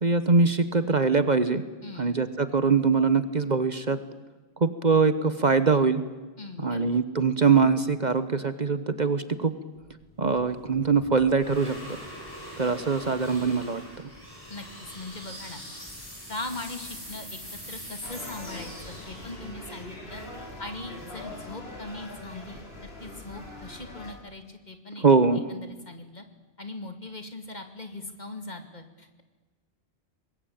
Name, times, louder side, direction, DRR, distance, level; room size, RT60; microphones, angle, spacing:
voice 1, 0.0-1.6 2.0-4.0 4.6-6.0 6.6-9.5 10.2-12.0 12.6-13.8 25.0-25.4, right 4 dB, 45° right, 12 dB, 1.2 m, -23 dB
voice 2, 1.8-2.2 6.4-7.0 14.5-15.6 16.3-17.4 17.7-20.2 20.6-25.1 25.5-26.2 26.6-29.2, left 2 dB, 40° left, 6 dB, 2.5 m, -40 dB
sound 1, 9.8-21.1, equal, 20° left, 7.6 m, -43 dB
sound 2, 18.0-24.1, left 1 dB, 65° left, 4.9 m, -42 dB
24.5 x 20.5 x 8.8 m, 1.3 s
omnidirectional pair, 1.1 m